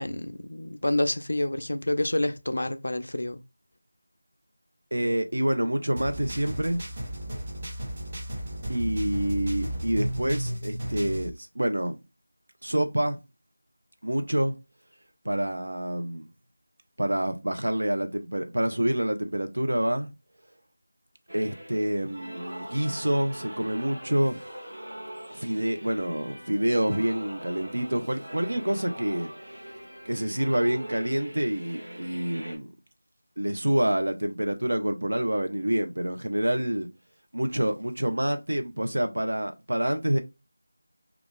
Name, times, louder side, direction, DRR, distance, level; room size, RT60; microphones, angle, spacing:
voice 1, 0.0-3.4, left 1 dB, 55° left, 0.3 m, -28 dB
voice 2, 4.9-6.8 8.7-12.0 12.6-13.2 14.0-14.6 15.2-16.3 17.0-20.1 21.3-24.4 25.3-29.3 30.1-32.7 33.4-36.9 37.3-40.2, right 1 dB, 75° right, 0.6 m, -27 dB
sound 1, 6.0-11.3, right 1 dB, 15° right, 0.4 m, -33 dB
sound 2, 21.3-32.6, right 1 dB, 50° right, 1.3 m, -42 dB
2.4 x 2.3 x 3.6 m
figure-of-eight pair, 180°, 0 cm